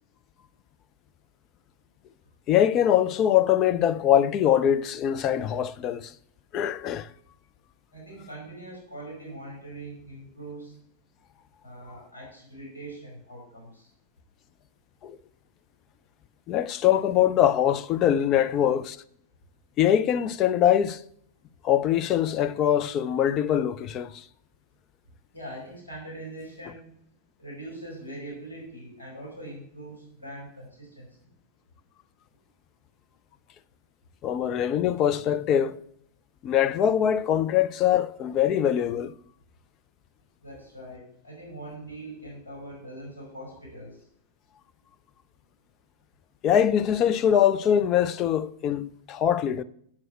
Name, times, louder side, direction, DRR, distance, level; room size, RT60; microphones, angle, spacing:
voice 1, 2.5-6.1 6.5-7.1 15.0-15.2 16.5-19.0 19.8-21.0 21.6-24.2 34.2-35.8 36.4-39.1 46.4-49.6, left 10 dB, 35° left, 0.6 m, -23 dB
voice 2, 7.9-10.7 11.6-13.9 25.3-26.8 27.4-31.1 40.4-43.9, right 1 dB, 75° left, 5.1 m, -42 dB
7.7 x 7.4 x 7.6 m
figure-of-eight pair, 90°, 0 cm